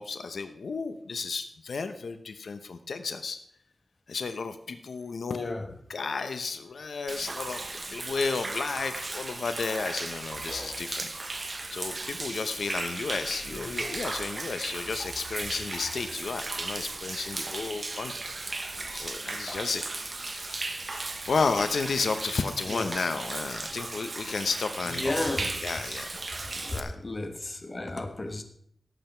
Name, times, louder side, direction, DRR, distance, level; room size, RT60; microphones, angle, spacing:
voice 1, 0.0-3.4 4.1-5.6 5.9-7.6 7.9-18.1 18.9-19.8 20.2-26.3 26.7-27.0, left 4 dB, 85° left, 9 dB, 0.8 m, -33 dB
voice 2, 5.3-5.7 13.5-13.8 22.7-22.9 24.9-25.6 26.3-28.4, left 2 dB, 35° left, 6 dB, 1.5 m, -34 dB
Human voice / Rain / Stream, 7.1-26.8, right 2 dB, 40° right, 1.2 m, -36 dB
17.5 x 8.0 x 4.5 m, 0.69 s
wide cardioid pair, 125°, 0 cm